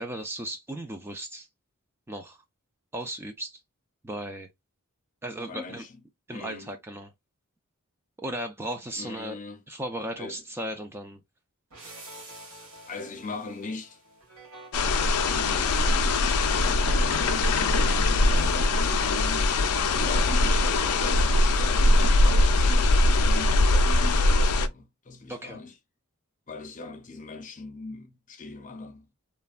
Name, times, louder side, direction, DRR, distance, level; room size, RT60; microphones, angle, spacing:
voice 1, 0.0-1.5 2.1-2.4 2.9-3.6 4.0-4.5 5.2-5.8 6.3-7.1 8.2-9.4 9.7-11.2 25.3-25.6, right 1 dB, 10° right, 0.3 m, -36 dB
voice 2, 5.5-6.0 6.3-6.8 9.0-9.6 10.2-10.4 12.9-14.0 15.3-19.6 19.9-25.8 26.5-29.1, left 3 dB, 35° left, 0.6 m, -40 dB
sound 1, 11.7-20.2, equal, 70° right, 1.7 m, -46 dB
sound 2, 14.7-24.7, left 2 dB, 85° left, 0.4 m, -22 dB
3.2 x 2.1 x 2.4 m
head